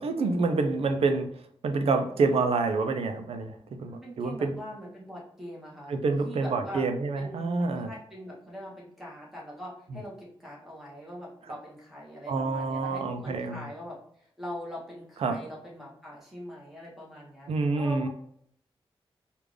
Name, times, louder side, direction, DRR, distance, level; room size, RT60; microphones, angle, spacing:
voice 1, 0.0-4.6 5.9-7.9 9.9-10.0 12.3-13.7 15.2-15.4 17.5-18.1, right 3 dB, 80° right, 6 dB, 0.5 m, -27 dB
voice 2, 3.9-6.0 6.2-6.8 7.2-18.1, equal, ahead, -4 dB, 1.2 m, -42 dB
3.5 x 2.5 x 3.2 m, 0.67 s
wide cardioid pair, 150°, 10 cm